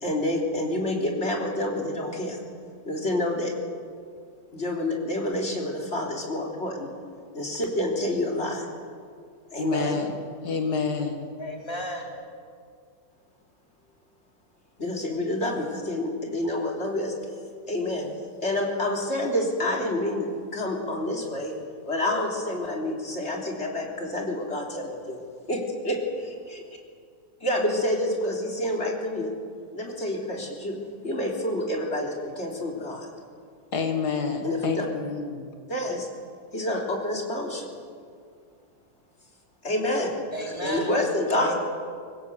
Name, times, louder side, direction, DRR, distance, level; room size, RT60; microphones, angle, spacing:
voice 1, 0.0-2.4 2.8-3.5 4.5-6.9 7.3-8.7 9.5-10.0 14.8-17.1 17.7-18.1 18.4-21.5 21.9-25.2 25.5-26.6 27.4-29.3 29.7-30.8 31.0-33.1 34.4-34.9 35.7-36.1 36.5-37.7 39.6-40.1 40.6-41.5, left 1 dB, 45° left, 0 dB, 3.8 m, -28 dB
voice 2, 9.6-10.1 10.4-11.3 33.7-35.4, left 5 dB, 85° left, 4 dB, 2.5 m, -28 dB
voice 3, 11.4-12.1 40.3-40.9 41.3-41.5, left 1 dB, 15° left, -1 dB, 3.9 m, -32 dB
24.5 x 20.0 x 8.2 m, 2.2 s
omnidirectional pair, 1.7 m